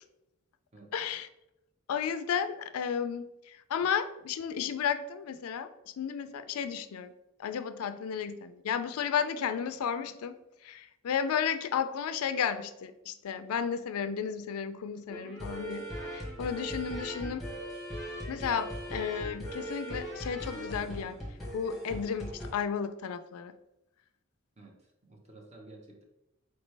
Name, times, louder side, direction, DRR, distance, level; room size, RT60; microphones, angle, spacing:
voice 1, 0.9-1.3 1.9-5.7 6.0-7.1 7.4-15.9 16.1-17.5 18.3-21.2 21.5-23.5, left 7 dB, 85° left, 11 dB, 0.4 m, -33 dB
sound 1, 15.1-22.5, equal, ahead, 1.1 m, -39 dB
voice 2, 24.6-26.0, right 2 dB, 30° right, 0 dB, 0.8 m, -52 dB
4.4 x 3.1 x 3.3 m, 0.89 s
head